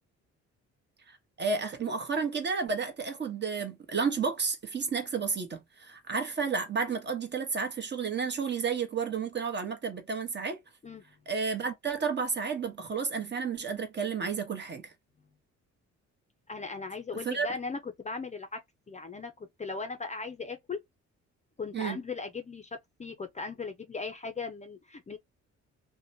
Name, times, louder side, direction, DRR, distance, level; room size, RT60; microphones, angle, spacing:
voice 1, 1.1-10.6 11.3-14.9 17.2-17.5 21.7-22.0, right 5 dB, 35° right, 1.0 m, -31 dB
voice 2, 16.5-18.6 18.9-20.8 21.6-25.2, left 4 dB, 25° left, 0.5 m, -38 dB
2.8 x 2.1 x 2.6 m
cardioid pair, 90°, 30 cm